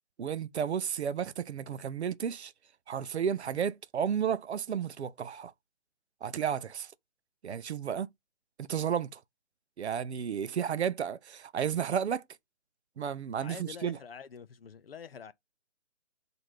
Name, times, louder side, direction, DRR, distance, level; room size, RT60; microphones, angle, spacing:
voice 1, 0.2-2.5 2.9-5.5 6.2-6.9 7.4-8.1 8.6-9.2 9.8-12.2 13.0-14.0, right 8 dB, 65° right, 0.5 m, -32 dB
voice 2, 13.4-15.3, left 7 dB, 55° left, 0.4 m, -46 dB
3.1 x 2.6 x 4.4 m
figure-of-eight pair, 150°, 36 cm